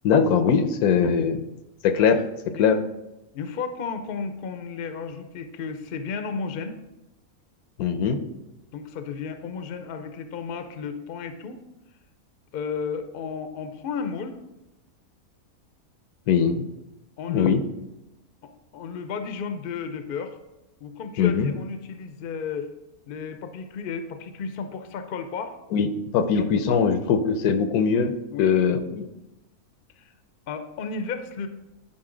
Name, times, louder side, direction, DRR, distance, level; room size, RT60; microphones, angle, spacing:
voice 1, 0.0-1.4 1.8-2.8 7.8-8.2 16.3-16.6 17.3-17.6 21.2-21.5 25.7-25.9 26.1-28.1 28.4-29.1, left 6 dB, 85° left, 9 dB, 1.1 m, -21 dB
voice 2, 3.3-6.8 8.7-11.6 12.5-14.4 17.2-17.6 18.4-20.4 20.8-22.7 23.1-25.6 26.3-26.8 28.3-28.5 30.0-30.1 30.5-31.5, left 5 dB, 55° left, 8 dB, 0.6 m, -33 dB
9.9 x 4.3 x 3.8 m, 0.97 s
omnidirectional pair, 1.5 m